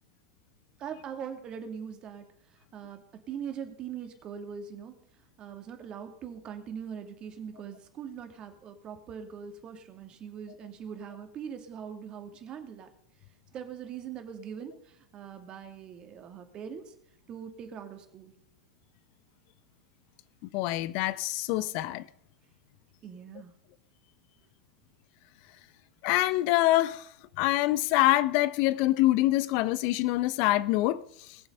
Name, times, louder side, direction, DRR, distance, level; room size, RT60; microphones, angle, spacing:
voice 1, 0.8-2.3 2.7-4.9 5.4-12.9 13.5-16.9 17.3-18.3 23.0-23.5, right 7 dB, 35° right, 2.3 m, -41 dB
voice 2, 20.5-22.0 26.0-27.0 27.4-31.0, left 16 dB, 50° left, 0.6 m, -25 dB
20.5 x 7.2 x 5.4 m
figure-of-eight pair, 90°, 3 cm